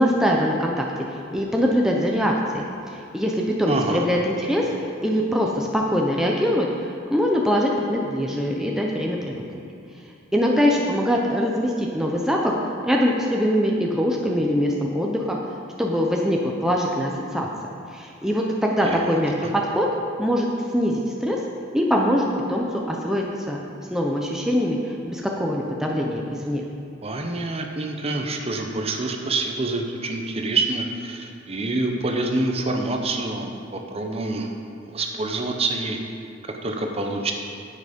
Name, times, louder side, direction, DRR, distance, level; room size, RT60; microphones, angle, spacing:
voice 1, 0.0-2.6 2.9-9.6 10.3-12.6 12.8-15.4 15.8-17.5 17.9-19.9 20.2-20.5 20.7-21.4 21.7-23.6 23.9-26.6, equal, 5° right, -1 dB, 0.6 m, -23 dB
voice 2, 3.7-4.1 18.8-19.0 19.4-19.5 27.0-34.5 34.8-36.0 36.6-37.3, right 2 dB, 30° right, 3 dB, 0.8 m, -26 dB
9.9 x 7.7 x 5.2 m, 2.5 s
head